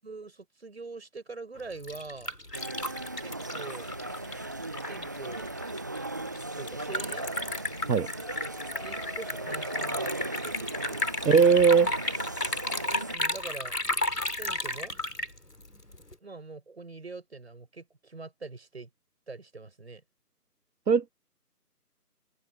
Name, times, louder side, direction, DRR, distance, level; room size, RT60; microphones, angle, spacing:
voice 1, 0.0-2.3 3.2-3.9 4.8-5.5 6.5-7.3 8.8-10.1 10.4-11.1 13.1-13.8 14.3-14.9 16.2-18.9 19.3-20.0, right 3 dB, 40° right, 6.1 m, -43 dB
Liquid, 1.6-16.1, left 1 dB, 75° left, 5.6 m, -34 dB
sound 1, 2.5-13.2, right 2 dB, 10° right, 1.7 m, -37 dB
sound 2, 8.1-13.7, left 4 dB, 30° left, 7.8 m, -51 dB
voice 2, 11.2-11.9 20.9-21.1, right 6 dB, 85° right, 0.8 m, -19 dB
open air
figure-of-eight pair, 165°, 48 cm